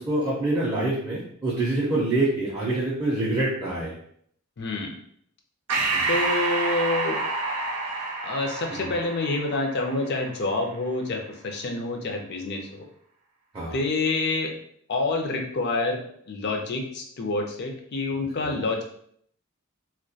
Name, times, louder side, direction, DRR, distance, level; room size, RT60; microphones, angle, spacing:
voice 1, 0.0-3.9 5.9-6.1 13.5-13.8 18.4-18.5, right 2 dB, 20° right, -7 dB, 0.4 m, -26 dB
voice 2, 4.6-5.0 6.1-7.2 8.2-12.8 13.7-14.5 14.9-18.8, left 2 dB, 50° left, 2 dB, 0.4 m, -27 dB
Breathing, 5.7-10.6, right 3 dB, 90° right, 0.4 m, -28 dB
2.2 x 2.1 x 2.6 m, 0.66 s
head